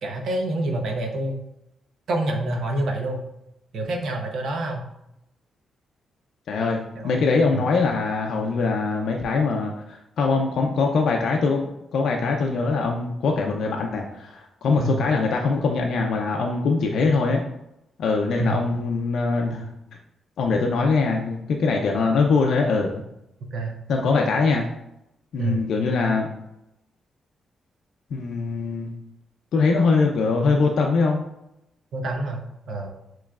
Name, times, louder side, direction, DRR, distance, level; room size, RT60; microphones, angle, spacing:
voice 1, 0.0-1.4 2.1-3.2 3.7-4.9 6.9-7.2 7.5-7.6 14.8-15.0 18.4-18.6 23.5-23.8 25.4-25.6 31.9-32.9, right 2 dB, 65° right, 3 dB, 0.8 m, -27 dB
voice 2, 6.5-17.4 18.0-19.7 20.4-23.0 23.9-24.6 25.3-26.3 28.1-28.9 29.5-31.2, left 4 dB, 65° left, 1 dB, 0.4 m, -22 dB
7.0 x 3.0 x 2.4 m, 0.84 s
wide cardioid pair, 160°, 0 cm